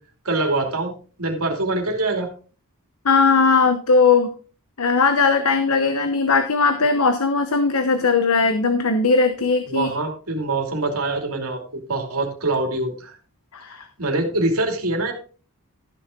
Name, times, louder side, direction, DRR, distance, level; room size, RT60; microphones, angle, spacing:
voice 1, 0.2-0.9 1.2-2.3 9.7-13.1 14.0-15.1, right 2 dB, 70° right, 2 dB, 2.8 m, -24 dB
voice 2, 3.0-4.3 4.8-9.9 13.5-13.8, left 4 dB, 75° left, 8 dB, 0.9 m, -18 dB
13.5 x 7.0 x 3.8 m, 0.38 s
head